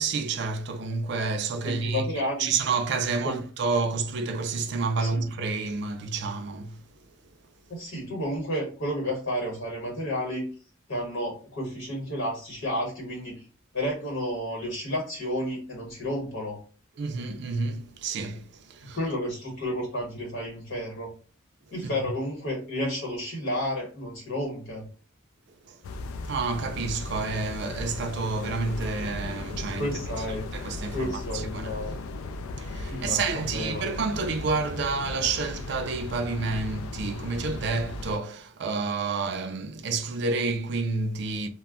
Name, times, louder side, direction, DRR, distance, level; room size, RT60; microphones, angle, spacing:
voice 1, 0.0-2.1 2.4-6.8 17.0-19.0 21.8-22.0 25.7-25.8 26.2-29.9 30.5-31.8 32.6-41.5, right 4 dB, 55° right, 0.4 m, -29 dB
voice 2, 1.6-2.5 3.2-3.4 5.0-5.1 7.7-10.4 10.9-13.4 13.7-16.6 18.9-21.1 21.7-24.9 29.8-30.5 30.9-31.9 32.9-33.8, equal, 65° left, 1.1 m, -31 dB
sound 1, 25.8-38.2, left 3 dB, 80° left, 0.3 m, -36 dB
2.1 x 2.0 x 3.6 m
head